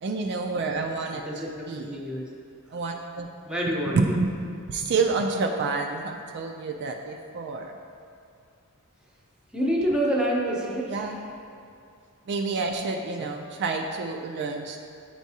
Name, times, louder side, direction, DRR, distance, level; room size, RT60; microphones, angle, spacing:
voice 1, 0.0-1.2 1.7-1.9 2.7-3.3 3.9-4.3 4.7-7.7 10.9-11.2 12.3-14.8, right 4 dB, 50° right, 3 dB, 0.4 m, -28 dB
voice 2, 1.1-2.3 3.5-4.2 9.5-11.2 13.2-13.3, equal, 5° right, -3 dB, 0.8 m, -27 dB
8.9 x 4.6 x 2.8 m, 2.4 s
head